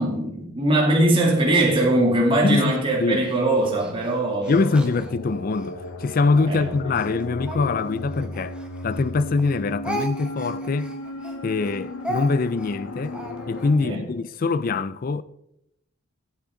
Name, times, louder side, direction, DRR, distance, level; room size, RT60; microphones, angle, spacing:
voice 1, 0.0-4.8 6.5-6.7 13.8-14.0, right 1 dB, 25° right, 2.6 m, -21 dB
voice 2, 2.4-2.7 3.0-3.2 4.5-10.9 11.4-13.2 13.5-15.2, left 3 dB, 40° left, 0.4 m, -23 dB
Speech, 2.6-5.7 6.3-9.1 9.4-13.8, equal, 5° right, 1.3 m, -37 dB
sound 1, 4.4-13.7, left 1 dB, 75° left, 1.1 m, -35 dB
13.5 x 8.2 x 3.8 m
head